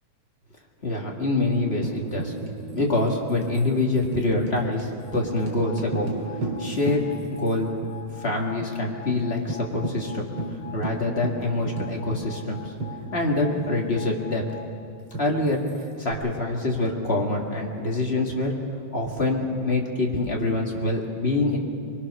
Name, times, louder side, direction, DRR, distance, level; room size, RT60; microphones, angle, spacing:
voice 1, 0.8-2.3 2.7-6.1 6.6-7.0 7.3-7.7 8.2-10.3 10.7-12.7 13.1-14.4 15.2-15.6 16.0-18.5 18.9-21.6, left 2 dB, 25° left, -1 dB, 1.9 m, -25 dB
Tambourine, 1.8-7.5 7.8-7.9 8.3-8.7 9.1-9.2 9.5-13.6 15.1-16.1, right 1 dB, 40° right, 3.1 m, -34 dB
sound 1, 5.0-14.7, left 8 dB, 80° left, 1.0 m, -45 dB
24.5 x 21.5 x 6.3 m, 2.4 s
omnidirectional pair, 3.7 m